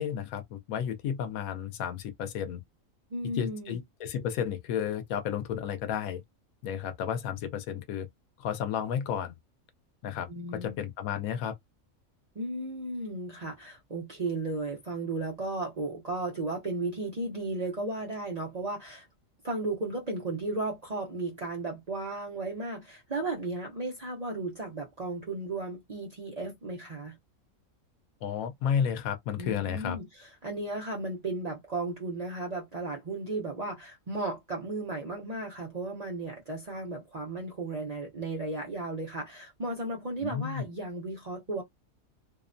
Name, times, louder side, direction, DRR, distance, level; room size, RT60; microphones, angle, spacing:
voice 1, 0.0-2.6 3.3-6.2 6.6-8.1 8.4-9.3 10.0-11.6 28.2-30.0 40.2-40.6, left 8 dB, 90° left, 1.0 m, -32 dB
voice 2, 3.1-3.8 10.3-10.7 12.3-19.1 19.4-27.2 29.4-30.0 30.4-41.6, right 2 dB, 45° right, 0.5 m, -35 dB
2.7 x 2.0 x 2.5 m
omnidirectional pair, 1.4 m